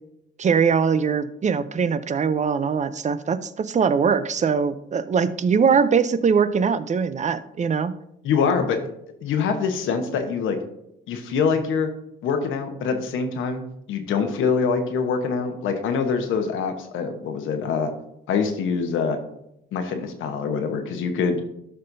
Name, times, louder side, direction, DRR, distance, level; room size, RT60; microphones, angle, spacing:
voice 1, 0.4-7.9, right 6 dB, 35° right, 13 dB, 0.5 m, -21 dB
voice 2, 8.2-8.8 9.2-10.6 11.1-11.9 12.2-13.6 13.9-17.9 18.3-19.2 19.7-21.4, left 5 dB, 85° left, 6 dB, 1.1 m, -24 dB
12.5 x 5.6 x 2.7 m, 0.82 s
cardioid pair, 90°, 20 cm